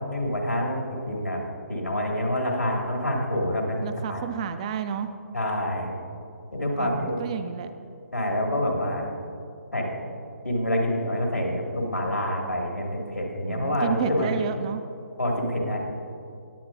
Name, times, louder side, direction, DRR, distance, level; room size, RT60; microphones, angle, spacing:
voice 1, 0.0-1.4 1.7-4.2 5.3-5.9 6.5-7.2 8.1-9.1 9.7-10.0 10.4-14.3 15.2-15.8, left 1 dB, 85° left, 0 dB, 2.3 m, -27 dB
voice 2, 3.8-5.1 6.8-7.7 13.4-14.8, right 7 dB, 25° right, 9 dB, 0.4 m, -31 dB
18.0 x 8.7 x 2.6 m, 2.5 s
figure-of-eight pair, 140°, 9 cm